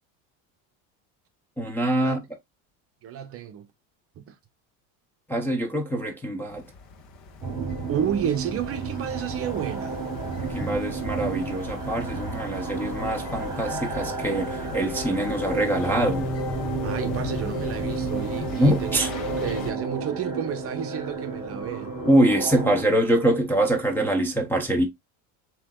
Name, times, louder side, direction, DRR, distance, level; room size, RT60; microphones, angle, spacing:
voice 1, 1.6-2.2 5.3-6.6 10.4-16.3 18.6-19.1 22.1-24.9, right 1 dB, 5° left, 0.6 m, -24 dB
voice 2, 3.0-3.7 4.2-4.4 7.9-10.0 16.8-22.0, right 9 dB, 35° right, 0.7 m, -31 dB
sound 1, 6.5-19.7, left 3 dB, 50° left, 1.2 m, -36 dB
sound 2, 7.4-22.8, right 4 dB, 10° right, 2.5 m, -32 dB
7.3 x 2.9 x 2.3 m
supercardioid pair, 135°, 41 cm